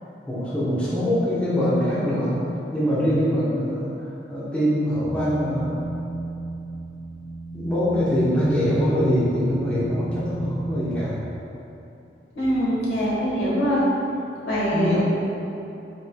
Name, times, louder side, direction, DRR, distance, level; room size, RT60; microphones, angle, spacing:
voice 1, 0.3-2.4 2.7-3.9 4.3-5.7 7.5-11.1 14.7-15.0, equal, 5° left, -10 dB, 0.7 m, -23 dB
sound 1, 5.0-11.1, right 2 dB, 65° left, 0.8 m, -34 dB
voice 2, 12.3-13.8 14.4-15.0, equal, 85° left, -8 dB, 1.2 m, -23 dB
4.9 x 3.1 x 2.2 m, 2.9 s
head